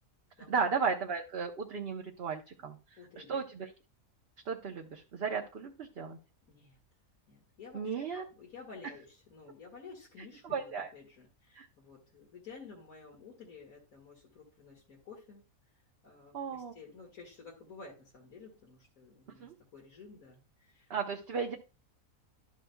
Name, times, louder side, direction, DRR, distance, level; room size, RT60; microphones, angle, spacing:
voice 1, 0.5-2.8 3.2-3.7 4.5-6.2 7.7-8.2 10.4-10.9 11.5-11.7 16.3-16.7 19.4-19.5 20.9-21.6, right 5 dB, 50° right, 1 dB, 1.0 m, -35 dB
voice 2, 3.0-3.4 6.5-6.8 7.3-15.4 16.0-19.5 19.7-20.9, left 4 dB, 75° left, -3 dB, 2.4 m, -52 dB
12.5 x 6.3 x 2.2 m, 0.31 s
omnidirectional pair, 1.5 m